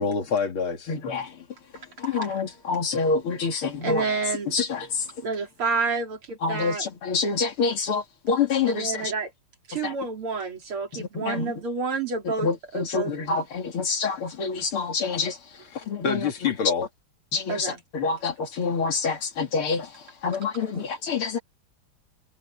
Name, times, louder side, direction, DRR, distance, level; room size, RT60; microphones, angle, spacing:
voice 1, 0.0-0.9 15.7-16.9, left 5 dB, 70° left, 3.0 m, -26 dB
voice 2, 0.9-1.5 2.0-4.0 4.5-5.1 6.4-9.1 9.8-9.9 10.9-11.5 12.4-15.4 15.7-16.3 17.3-21.4, left 4 dB, 85° left, 3.4 m, -27 dB
voice 3, 3.8-4.6 5.2-6.9 8.7-9.3 9.7-13.5 17.5-17.8 20.7-20.9, right 4 dB, 85° right, 4.0 m, -29 dB
omnidirectional pair, 2.3 m